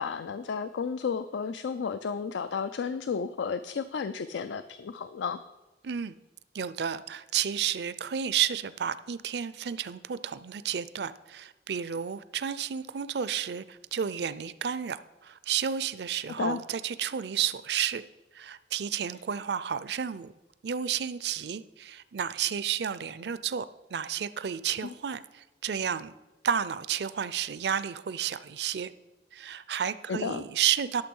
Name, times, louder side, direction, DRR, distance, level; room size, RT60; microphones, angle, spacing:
voice 1, 0.0-5.4 16.4-16.6 30.1-30.4, left 6 dB, 90° left, 12 dB, 0.4 m, -32 dB
voice 2, 5.8-6.2 6.5-18.0 18.3-20.3 20.6-23.7 23.9-26.1 26.4-28.9 29.3-31.0, right 8 dB, 65° right, 15 dB, 0.5 m, -31 dB
11.5 x 6.9 x 5.4 m, 1.1 s
head